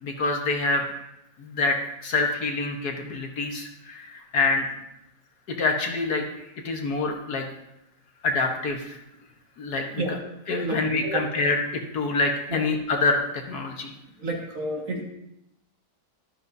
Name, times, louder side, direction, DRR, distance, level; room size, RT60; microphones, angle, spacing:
voice 1, 0.0-0.9 1.4-4.6 5.6-6.2 6.6-7.5 8.2-9.0 9.6-10.0 10.5-13.9, left 3 dB, 65° left, 2 dB, 1.8 m, -26 dB
voice 2, 10.6-11.2 12.5-12.6 14.2-15.0, right 1 dB, 50° right, 0 dB, 2.0 m, -30 dB
13.0 x 12.5 x 2.7 m, 0.84 s
omnidirectional pair, 1.9 m